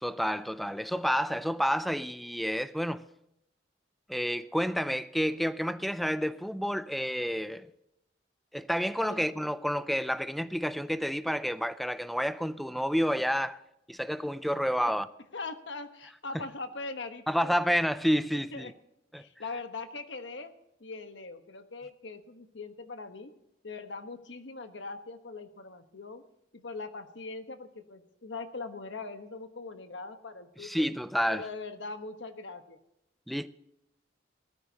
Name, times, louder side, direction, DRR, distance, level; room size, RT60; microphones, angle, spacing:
voice 1, 0.0-3.0 4.1-7.7 8.5-13.6 13.9-15.1 16.3-16.4 17.3-18.7 19.1-19.3 30.6-31.5 33.3-33.5, equal, ahead, 0.4 m, -29 dB
voice 2, 15.3-17.5 18.3-18.7 19.1-20.5 20.8-23.3 23.6-26.2 26.5-30.9 31.3-32.8, left 3 dB, 80° left, 1.3 m, -41 dB
19.5 x 13.5 x 2.9 m
head